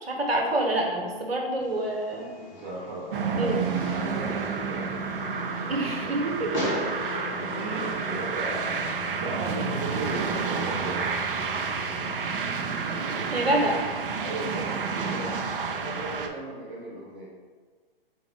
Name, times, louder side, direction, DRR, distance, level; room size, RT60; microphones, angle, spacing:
voice 1, 0.0-2.3 3.4-3.6 5.7-6.5 13.3-13.8, right 1 dB, 85° right, 1 dB, 1.0 m, -27 dB
Fireworks, 1.6-9.5, equal, 30° left, 1.3 m, -39 dB
voice 2, 2.3-4.9 5.5-5.9 7.6-11.3 14.2-17.3, right 2 dB, 30° right, -6 dB, 0.9 m, -37 dB
sound 1, 3.1-16.3, right 5 dB, 65° right, 0.6 m, -30 dB
4.2 x 3.5 x 3.6 m, 1.5 s
figure-of-eight pair, 120°, 29 cm